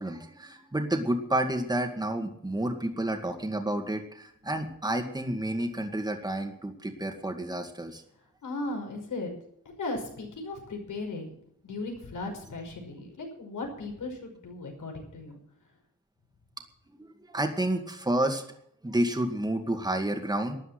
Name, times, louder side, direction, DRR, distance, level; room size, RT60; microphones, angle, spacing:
voice 1, 0.0-8.0 16.9-18.4 18.8-20.6, right 1 dB, 15° right, 5 dB, 2.1 m, -30 dB
voice 2, 8.4-9.3 9.8-11.3 11.6-15.4, left 2 dB, 85° left, 2 dB, 5.7 m, -36 dB
13.0 x 11.0 x 7.8 m, 0.69 s
wide cardioid pair, 125°, 31 cm